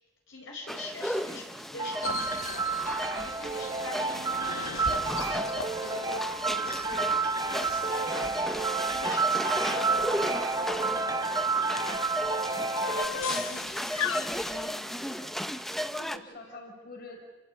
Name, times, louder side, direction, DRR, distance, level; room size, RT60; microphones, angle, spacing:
voice 1, 0.3-8.3 8.9-11.3 12.9-15.4, left 2 dB, 65° left, -1 dB, 5.2 m, -44 dB
sound 1, 0.7-16.2, equal, ahead, 0.7 m, -35 dB
sound 2, 1.8-13.1, right 4 dB, 20° right, 1.0 m, -30 dB
sound 3, 2.0-14.7, left 5 dB, 80° left, 1.2 m, -39 dB
voice 2, 12.6-13.1 13.4-13.5 16.0-17.3, left 2 dB, 45° left, 2 dB, 5.7 m, -46 dB
28.0 x 16.5 x 8.8 m, 1.2 s
head